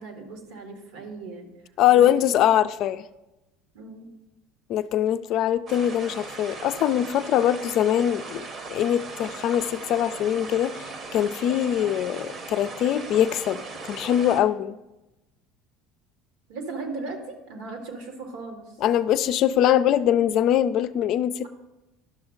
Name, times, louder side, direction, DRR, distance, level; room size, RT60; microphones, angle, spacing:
voice 1, 0.0-1.5 1.9-2.5 3.7-4.1 16.5-18.7, right 3 dB, 80° right, 1.6 m, -37 dB
voice 2, 1.8-3.0 4.7-8.4 8.7-10.8 11.1-13.6 13.9-14.8 18.8-21.5, left 11 dB, 60° left, 0.4 m, -22 dB
sound 1, 5.7-14.4, right 3 dB, 45° right, 1.0 m, -38 dB
11.0 x 6.2 x 3.8 m
supercardioid pair, 85°, 0 cm